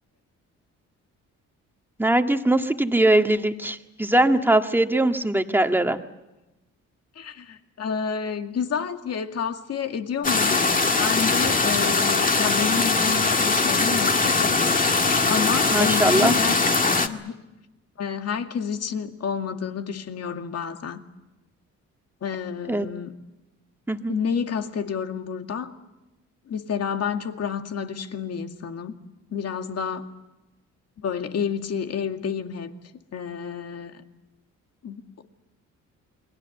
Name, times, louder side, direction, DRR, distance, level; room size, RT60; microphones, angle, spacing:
voice 1, 2.0-6.0 15.7-16.3 22.7-22.9 23.9-24.2, right 1 dB, 5° right, 6 dB, 1.8 m, -21 dB
voice 2, 7.2-10.6 11.0-14.6 15.3-16.6 17.0-17.4 18.0-21.0 22.2-23.1 24.1-25.7 26.5-28.9 29.3-30.1 31.0-32.7 33.1-33.9 34.8-35.2, left 7 dB, 55° left, 6 dB, 2.2 m, -29 dB
sound 1, 10.2-17.1, left 3 dB, 25° left, 1.9 m, -21 dB
29.0 x 22.0 x 8.1 m, 0.99 s
cardioid pair, 90°, 30 cm